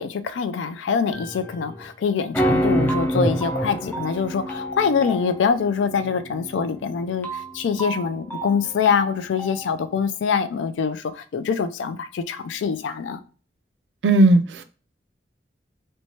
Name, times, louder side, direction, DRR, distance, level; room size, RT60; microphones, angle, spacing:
voice 1, 0.0-13.2, left 6 dB, 85° left, 0.3 m, -24 dB
sound 1, 1.1-1.8 2.3-9.8, right 1 dB, 10° left, 0.3 m, -27 dB
voice 2, 14.0-14.6, right 2 dB, 70° right, 0.4 m, -16 dB
3.0 x 2.1 x 2.7 m
head